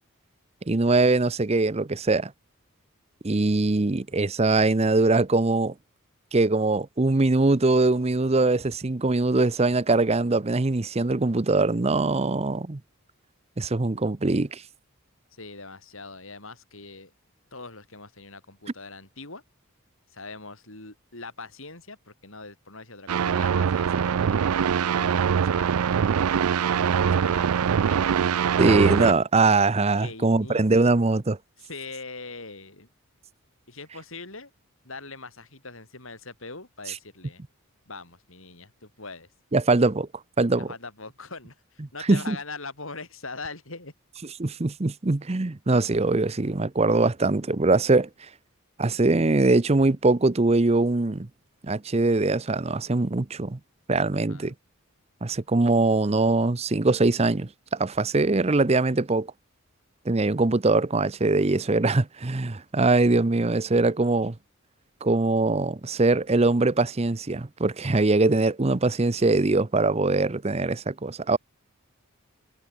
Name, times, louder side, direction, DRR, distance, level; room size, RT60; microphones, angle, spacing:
voice 1, 0.7-2.3 3.2-5.7 6.3-12.8 13.6-14.6 28.6-31.4 39.5-40.1 40.4-40.7 42.1-42.4 44.4-48.1 48.8-51.3 51.6-53.6 53.9-54.5 55.2-59.3 60.1-64.3 65.0-71.4, right 3 dB, 30° right, 0.7 m, -22 dB
voice 2, 15.3-17.1 17.5-19.4 20.1-25.7 26.0-26.4 27.0-27.6 27.9-28.5 30.0-30.9 31.6-32.9 33.7-34.5 34.8-37.4 37.9-39.3 40.6-43.9 54.3-54.5 69.1-69.5, left 3 dB, 65° left, 7.6 m, -42 dB
sound 1, 23.1-29.1, right 7 dB, 90° right, 0.4 m, -23 dB
head